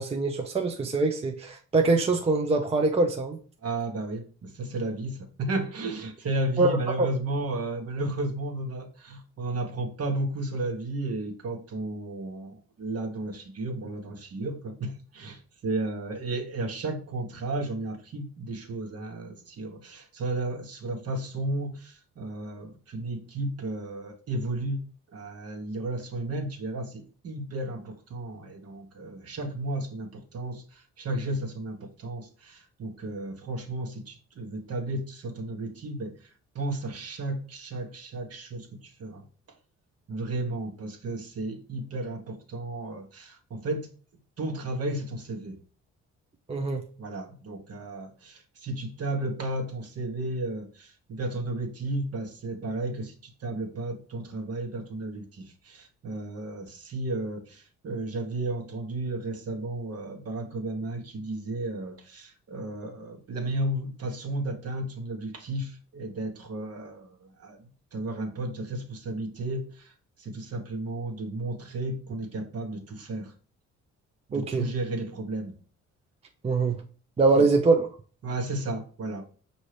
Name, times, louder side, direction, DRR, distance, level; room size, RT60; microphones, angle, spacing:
voice 1, 0.0-3.4 6.6-7.1 46.5-46.8 74.3-74.7 76.4-76.8 77.2-77.9, right 3 dB, 20° right, 0.5 m, -23 dB
voice 2, 3.6-36.3 36.5-39.2 40.1-43.9 44.4-45.6 47.0-69.9 70.2-73.3 74.3-75.5 77.3-77.5 78.2-79.2, right 2 dB, 55° right, 1.2 m, -33 dB
5.3 x 2.7 x 3.2 m
cardioid pair, 90°, 30 cm